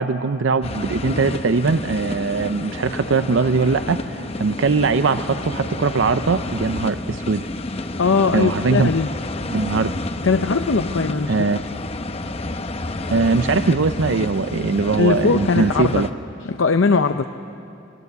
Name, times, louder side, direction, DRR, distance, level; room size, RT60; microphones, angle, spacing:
voice 1, 0.0-7.4 8.3-8.9 9.5-9.9 11.3-11.6 13.1-16.1, right 4 dB, 75° right, 11 dB, 0.6 m, -21 dB
sound 1, 0.6-16.1, left 2 dB, 30° left, 0.8 m, -29 dB
voice 2, 8.0-9.1 10.2-11.5 15.0-16.0 16.5-17.2, left 4 dB, 80° left, 8 dB, 0.6 m, -19 dB
28.0 x 20.0 x 8.2 m, 2.6 s
head